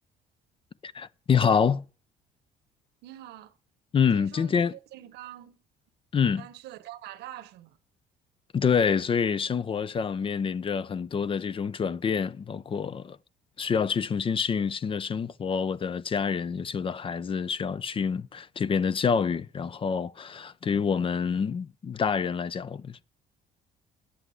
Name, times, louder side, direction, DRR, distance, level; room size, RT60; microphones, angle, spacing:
voice 1, 0.8-1.8 3.9-4.7 6.1-6.5 8.5-13.2 13.6-23.1, left 6 dB, 30° left, 0.5 m, -27 dB
voice 2, 3.0-3.6 4.1-5.6 6.4-7.8, right 13 dB, 80° right, 1.0 m, -45 dB
9.8 x 8.0 x 8.1 m
cardioid pair, 110°, 17 cm